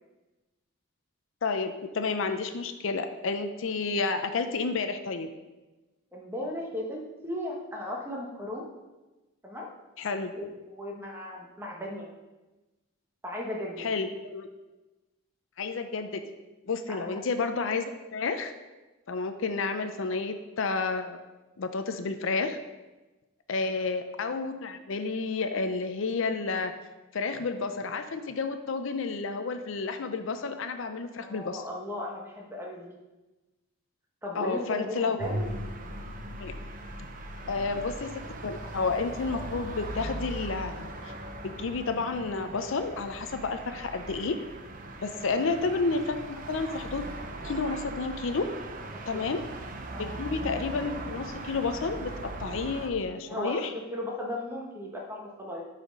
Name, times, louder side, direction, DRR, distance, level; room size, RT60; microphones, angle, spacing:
voice 1, 1.4-5.3 10.0-10.3 13.8-14.5 15.6-16.2 16.7-18.5 19.1-21.2 21.6-22.6 23.5-26.7 27.1-31.6 34.3-35.2 36.4-36.5 37.4-41.1 41.4-44.4 45.0-47.1 47.4-48.5 49.1-49.4 50.0-52.1 52.4-53.7, left 4 dB, 70° left, 8 dB, 0.5 m, -31 dB
voice 2, 6.1-8.7 9.4-9.7 10.3-12.1 13.2-13.9 16.9-17.2 20.1-20.2 23.6-23.8 31.2-32.9 34.2-35.4 43.6-43.9 45.1-45.4 49.1-49.3 49.9-50.1 53.3-53.6 53.9-55.6, left 1 dB, 10° right, -2 dB, 1.1 m, -36 dB
sound 1, 35.2-52.9, right 1 dB, 40° right, 0.6 m, -39 dB
7.7 x 4.2 x 5.2 m, 1.1 s
head